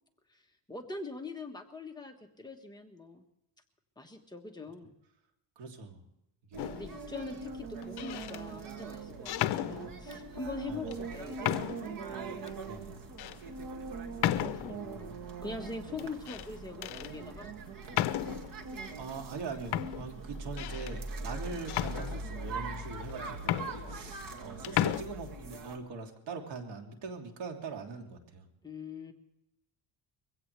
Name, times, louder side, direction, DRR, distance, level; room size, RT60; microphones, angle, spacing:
voice 1, 0.7-3.2 4.0-4.9 6.7-12.5 14.2-17.5 28.6-29.1, left 3 dB, 10° left, 2 dB, 1.4 m, -43 dB
voice 2, 5.6-6.0 6.5-6.7 10.7-10.9 12.6-13.0 19.0-28.4, right 4 dB, 70° right, 3 dB, 3.0 m, -42 dB
sound 1, 6.5-25.8, right 3 dB, 50° right, 2.3 m, -42 dB
sound 2, 6.6-7.0 7.8-8.4 9.3-10.2 10.9-11.0 11.4-12.0 12.5-12.6 13.2-13.4 14.2-14.9 16.0-16.5 16.8-17.1 17.9-18.6 19.3-19.4 19.7-21.0 21.7-22.5 23.1-23.2 23.4-24.4 24.6-25.0, left 13 dB, 65° left, 0.8 m, -33 dB
22.5 x 16.5 x 3.3 m, 0.84 s
cardioid pair, 135°, 42 cm